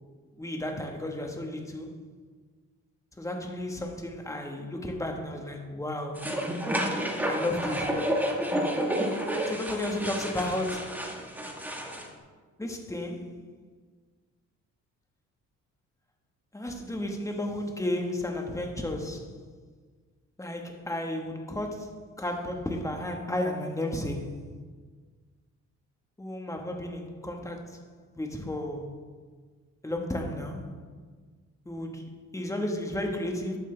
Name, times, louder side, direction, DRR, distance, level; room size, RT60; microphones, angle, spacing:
voice 1, 0.4-2.0 3.2-6.2 7.3-8.0 9.5-11.1 12.6-13.3 16.5-19.4 20.4-24.4 26.2-27.8 28.1-29.0 29.8-30.7 31.6-33.6, left 1 dB, 10° left, 2 dB, 1.5 m, -33 dB
sound 1, 6.1-12.1, equal, 5° right, 1.5 m, -30 dB
11.5 x 7.7 x 3.4 m, 1.5 s
cardioid pair, 90°, 30 cm